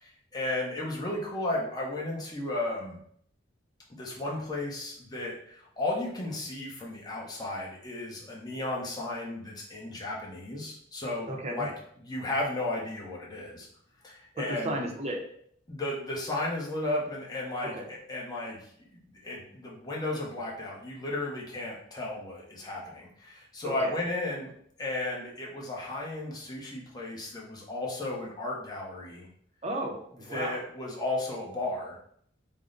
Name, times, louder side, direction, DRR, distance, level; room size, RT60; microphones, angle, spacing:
voice 1, 0.0-3.0 3.9-11.7 12.0-13.7 14.0-14.8 15.7-18.6 18.9-24.5 24.8-29.3 30.3-32.0, left 2 dB, 20° left, -3 dB, 0.8 m, -34 dB
voice 2, 11.3-11.7 14.6-15.2 17.7-17.9 23.6-24.0 29.6-30.6, right 1 dB, 35° right, 1 dB, 0.6 m, -34 dB
3.6 x 2.1 x 3.7 m, 0.65 s
head